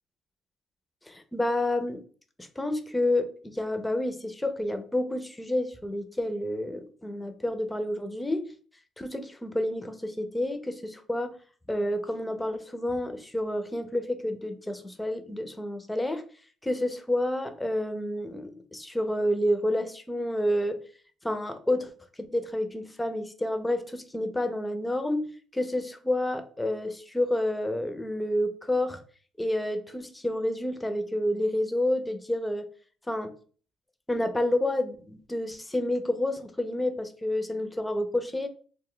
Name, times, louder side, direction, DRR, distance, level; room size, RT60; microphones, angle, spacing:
voice 1, 1.1-2.0 2.4-8.5 9.0-11.3 11.7-16.2 16.6-20.8 21.2-21.9 22.3-29.0 29.4-32.7 33.1-33.3 34.1-38.5, left 1 dB, 10° left, 9 dB, 0.5 m, -29 dB
2.2 x 2.1 x 3.7 m, 0.42 s
supercardioid pair, 70°, 0 cm